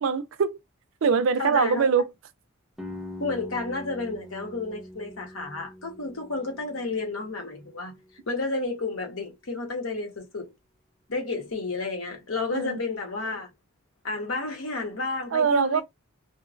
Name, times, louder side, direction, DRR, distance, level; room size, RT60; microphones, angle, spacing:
voice 1, 0.0-0.6 1.0-2.1 12.5-12.8 15.3-15.8, right 6 dB, 65° right, 0.4 m, -23 dB
voice 2, 1.4-1.9 3.2-7.9 8.3-10.5 11.1-13.5 14.0-15.8, left 3 dB, 70° left, 1.0 m, -31 dB
sound 1, 2.8-8.5, left 1 dB, ahead, 0.5 m, -43 dB
2.7 x 2.2 x 2.5 m
head